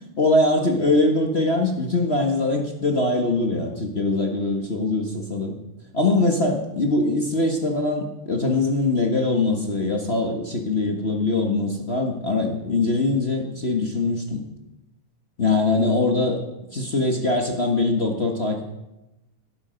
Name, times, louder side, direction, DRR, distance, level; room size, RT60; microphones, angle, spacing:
voice 1, 0.2-5.5 5.9-14.4 15.4-16.4 16.7-18.7, left 2 dB, 55° left, 1 dB, 0.7 m, -22 dB
18.5 x 13.5 x 5.3 m, 0.94 s
omnidirectional pair, 3.9 m